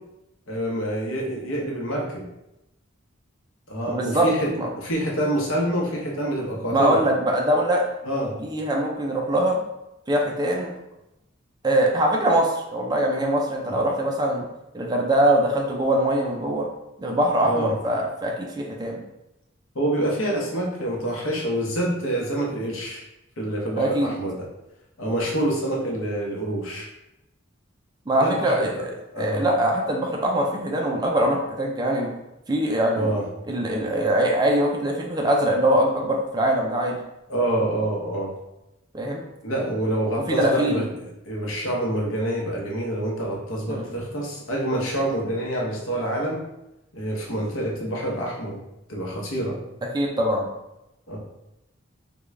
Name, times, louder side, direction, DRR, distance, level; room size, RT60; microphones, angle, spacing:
voice 1, 0.5-2.2 3.7-4.5 4.8-7.0 8.0-8.4 17.4-17.7 19.7-23.0 23.4-24.5 25.0-26.9 28.1-28.9 29.1-29.4 33.0-33.3 37.3-38.3 39.4-40.9 41.3-46.4 46.9-48.6 48.9-49.6 51.1-51.2, right 1 dB, 80° left, -2 dB, 0.9 m, -26 dB
voice 2, 3.9-4.3 4.5-4.7 6.7-7.8 8.4-9.6 10.1-10.7 11.6-14.5 14.7-16.7 17.0-19.0 23.8-24.1 28.1-28.7 29.2-32.1 32.5-33.1 33.5-37.0 38.9-39.2 40.3-40.8 43.7-43.9 49.9-50.5, right 1 dB, 20° right, 0 dB, 0.4 m, -22 dB
3.5 x 2.3 x 3.2 m, 0.90 s
head